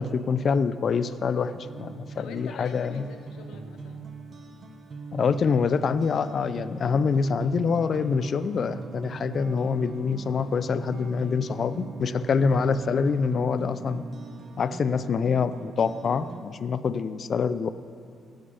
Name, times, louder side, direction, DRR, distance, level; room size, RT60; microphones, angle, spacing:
voice 1, 0.0-3.0 5.1-14.0 14.6-17.7, left 5 dB, 50° left, 14 dB, 0.4 m, -25 dB
sound 1, 1.6-16.4, right 4 dB, 45° right, 0.9 m, -40 dB
voice 2, 1.9-4.1, left 6 dB, 85° left, 6 dB, 0.9 m, -45 dB
17.5 x 6.5 x 5.5 m, 2.5 s
cardioid pair, 90°, 0 cm